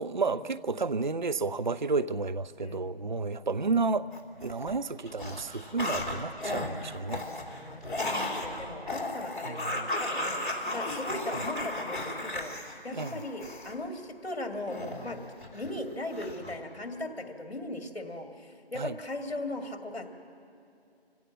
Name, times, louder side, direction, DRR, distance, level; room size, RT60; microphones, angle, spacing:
voice 1, 0.0-4.1 4.4-7.3 9.4-9.9 11.3-11.4 12.9-13.2 18.7-19.0, right 4 dB, 50° right, 0.4 m, -31 dB
voice 2, 2.6-3.0 3.6-3.8 7.6-12.5 12.8-15.2 15.5-18.3 18.7-20.1, left 1 dB, 70° left, 2.4 m, -38 dB
sound 1, 4.1-4.8 5.1-13.8 14.7-15.8 16.1-16.6, left 1 dB, 50° left, 2.8 m, -35 dB
25.0 x 16.0 x 7.5 m
figure-of-eight pair, 165°, 32 cm